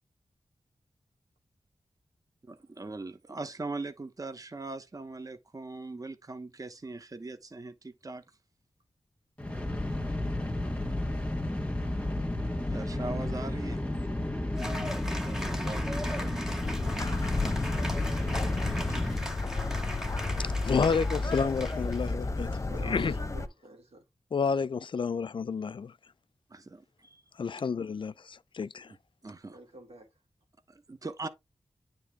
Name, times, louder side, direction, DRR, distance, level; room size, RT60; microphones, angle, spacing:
voice 1, 2.5-8.2 12.7-13.8 15.2-16.6 26.5-27.2 29.2-29.6 30.7-31.3, right 3 dB, 35° right, 0.9 m, -40 dB
sound 1, 9.4-19.2, left 1 dB, 15° left, 1.4 m, -32 dB
Cheering / Applause, 14.5-22.1, equal, 5° right, 1.7 m, -40 dB
sound 2, 16.6-23.5, left 3 dB, 30° left, 0.8 m, -32 dB
voice 2, 16.6-17.0 22.4-24.0 29.5-30.1, right 3 dB, 90° right, 2.2 m, -49 dB
voice 3, 20.2-22.5 22.8-23.1 24.3-25.9 27.4-28.9, left 5 dB, 55° left, 0.4 m, -30 dB
9.4 x 3.4 x 3.5 m
wide cardioid pair, 70°, 10 cm